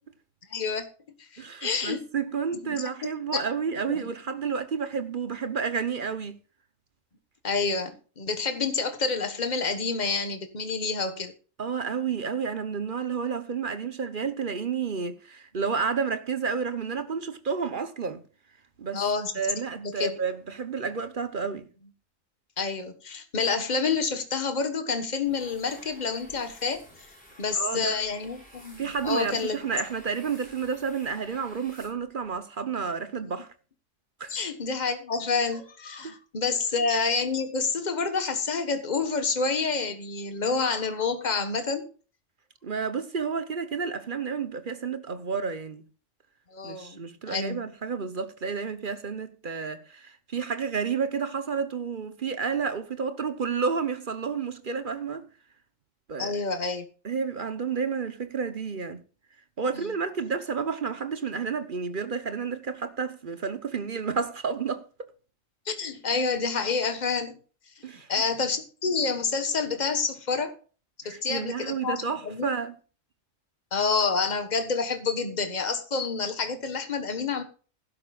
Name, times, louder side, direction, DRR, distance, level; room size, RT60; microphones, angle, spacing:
voice 1, 0.5-0.9 1.3-2.0 2.5-3.4 3.9-4.1 7.4-11.3 18.9-19.3 19.7-20.1 22.6-26.8 27.4-29.6 34.3-41.9 46.5-47.0 47.3-47.6 56.2-56.8 59.7-59.9 65.7-67.4 68.1-70.5 71.0-72.5 73.7-77.4, left 4 dB, 35° left, 1.5 m, -28 dB
voice 2, 1.4-6.4 11.6-18.2 18.8-19.0 19.3-21.7 27.5-28.0 28.8-33.5 34.2-34.4 36.0-36.2 42.6-45.8 46.6-55.3 56.1-56.4 57.0-59.0 59.6-64.9 67.8-68.1 71.0-72.8, right 5 dB, 45° right, 1.0 m, -30 dB
sound 1, 25.2-32.3, equal, 5° left, 6.4 m, -52 dB
15.5 x 12.0 x 2.4 m
omnidirectional pair, 1.3 m